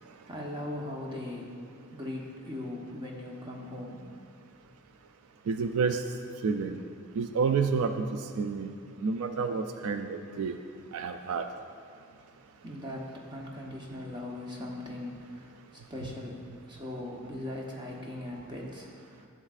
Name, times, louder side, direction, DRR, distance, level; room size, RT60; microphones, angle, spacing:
voice 1, 0.0-4.1 12.3-19.3, left 1 dB, 20° right, -2 dB, 0.9 m, -40 dB
voice 2, 5.5-6.0 6.4-6.8 7.1-8.7 9.0-10.5 10.9-11.4, right 5 dB, 75° right, 7 dB, 0.3 m, -29 dB
11.0 x 7.3 x 2.4 m, 2.3 s
head